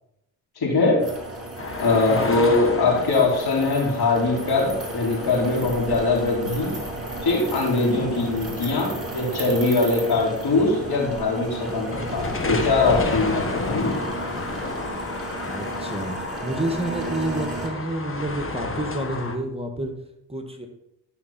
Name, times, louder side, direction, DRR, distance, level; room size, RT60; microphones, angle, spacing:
voice 1, 0.6-1.1 1.8-6.8 7.2-14.0, left 3 dB, 65° left, -2 dB, 3.9 m, -22 dB
sound 1, 1.0-17.7, right 2 dB, 35° right, 3.8 m, -34 dB
sound 2, 1.6-19.4, left 3 dB, 30° left, 1.7 m, -33 dB
voice 2, 2.1-2.5 7.8-8.1 15.5-16.2 16.4-19.9 20.3-20.7, right 1 dB, 15° right, 5 dB, 1.7 m, -29 dB
12.5 x 5.7 x 4.3 m, 0.85 s
supercardioid pair, 50°, 41 cm